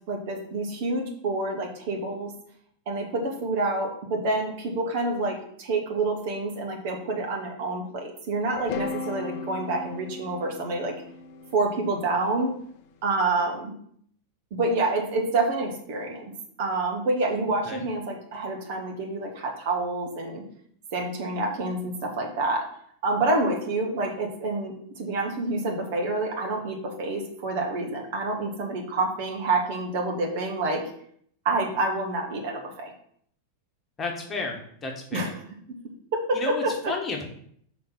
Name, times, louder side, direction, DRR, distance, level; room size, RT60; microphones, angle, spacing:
voice 1, 0.1-2.3 2.8-11.0 11.5-12.5 13.0-13.7 14.5-20.4 20.9-22.6 23.0-30.8 31.4-32.9 35.1-35.3 35.7-35.8 36.1-36.9, right 2 dB, 50° right, 1 dB, 1.6 m, -28 dB
sound 1, 8.6-12.7, left 4 dB, 45° left, 0.7 m, -37 dB
voice 2, 34.0-35.3 36.3-37.2, left 3 dB, 20° left, 1 dB, 1.4 m, -32 dB
5.9 x 4.2 x 6.0 m, 0.65 s
figure-of-eight pair, 90°, 0 cm